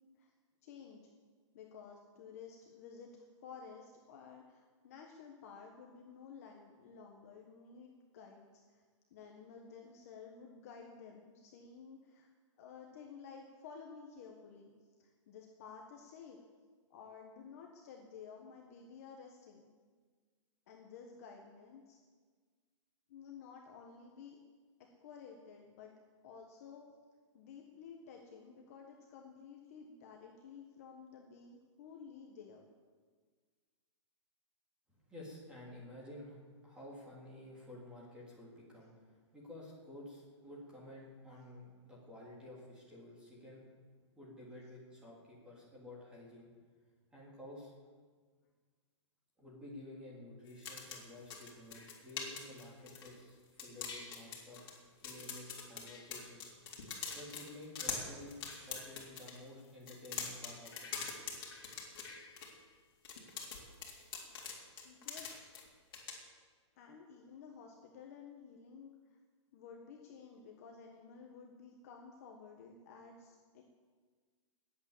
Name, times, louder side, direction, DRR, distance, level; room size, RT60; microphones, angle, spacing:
voice 1, 0.6-1.0 1.5-8.8 9.1-12.3 12.6-14.7 15.0-16.4 16.9-19.7 20.7-22.0 23.1-24.4 24.8-25.9 26.2-26.9 27.3-32.6 64.8-65.5 66.7-69.2 69.5-73.6, left 6 dB, 30° left, 1 dB, 1.4 m, -53 dB
voice 2, 34.9-43.7 44.1-46.5 47.1-47.7 49.4-54.6 54.9-56.4 57.1-61.0, left 1 dB, 5° right, -5 dB, 3.3 m, -52 dB
sound 1, 50.5-53.3 53.6-54.8 55.0-59.4 59.8-62.5 63.0-65.6 65.9-66.1, left 5 dB, 45° left, 3.8 m, -43 dB
20.0 x 8.6 x 7.4 m, 1.5 s
hypercardioid pair, 180°, 16 cm